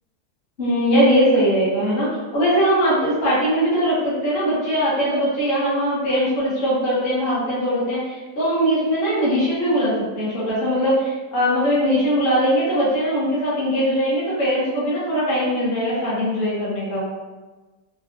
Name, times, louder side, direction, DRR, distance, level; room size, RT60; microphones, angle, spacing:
voice 1, 0.6-17.1, equal, 45° left, -9 dB, 1.0 m, -20 dB
3.9 x 2.3 x 2.6 m, 1.2 s
omnidirectional pair, 1.7 m